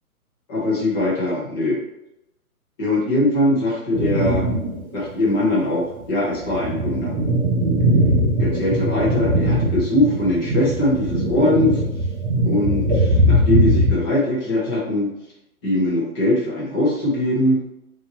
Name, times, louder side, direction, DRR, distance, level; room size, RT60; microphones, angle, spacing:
voice 1, 0.5-1.8 2.8-4.4 4.9-7.1 8.4-11.8 12.4-15.1 15.6-17.6, left 1 dB, 15° left, -5 dB, 0.9 m, -21 dB
sound 1, 3.9-4.8 5.2-5.3 6.0-13.9, right 1 dB, 45° right, 1.6 m, -20 dB
5.3 x 2.9 x 2.9 m, 0.85 s
hypercardioid pair, 150°, 46 cm